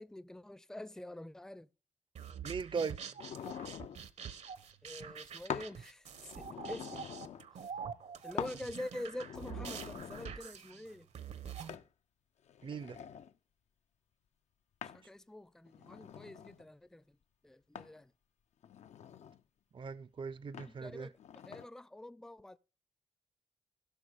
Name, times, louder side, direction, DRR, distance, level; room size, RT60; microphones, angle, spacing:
voice 1, 0.0-1.7 4.8-7.0 7.6-7.7 8.2-11.1 14.8-17.2 17.4-18.1 20.6-22.6, left 1 dB, 5° left, 0.5 m, -46 dB
sound 1, 2.2-11.8, right 7 dB, 75° right, 1.1 m, -46 dB
voice 2, 2.4-3.0 12.6-13.0 19.7-21.1, right 5 dB, 45° right, 0.6 m, -39 dB
sound 2, 3.2-4.0 5.5-5.8 6.2-7.5 8.4-8.6 9.1-10.4 11.7-11.9 12.5-13.3 14.8-15.1 15.7-16.7 17.8-18.0 18.6-19.4 20.5-20.8 21.2-21.7, left 8 dB, 75° left, 0.7 m, -45 dB
16.5 x 6.2 x 4.9 m
cardioid pair, 65°, 12 cm